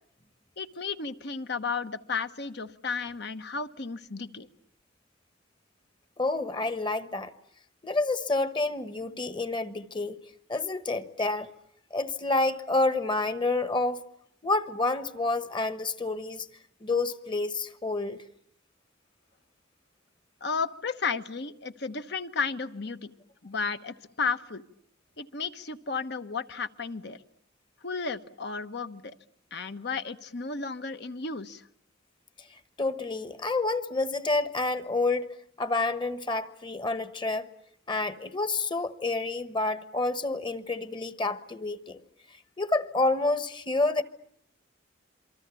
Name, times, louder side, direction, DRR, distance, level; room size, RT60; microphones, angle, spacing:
voice 1, 0.6-4.5 20.4-23.1 23.4-24.6 25.2-27.2 27.8-29.1 29.5-31.6, left 5 dB, 60° left, 1.2 m, -33 dB
voice 2, 6.2-7.3 7.8-10.2 10.5-11.5 11.9-14.0 14.4-16.5 16.8-18.2 32.8-35.3 35.6-37.5 37.9-42.0 42.6-44.0, left 2 dB, 25° left, 1.3 m, -28 dB
27.5 x 24.5 x 8.4 m
head